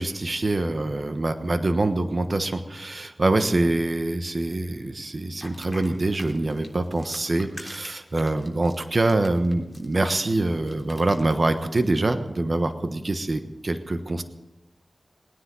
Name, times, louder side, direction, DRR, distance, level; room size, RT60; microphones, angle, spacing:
voice 1, 0.0-14.2, right 2 dB, 55° right, 8 dB, 1.3 m, -25 dB
sound 1, 5.4-11.9, left 1 dB, 5° left, 3.5 m, -45 dB
20.5 x 10.0 x 7.1 m, 1.0 s
cardioid pair, 45°, 0 cm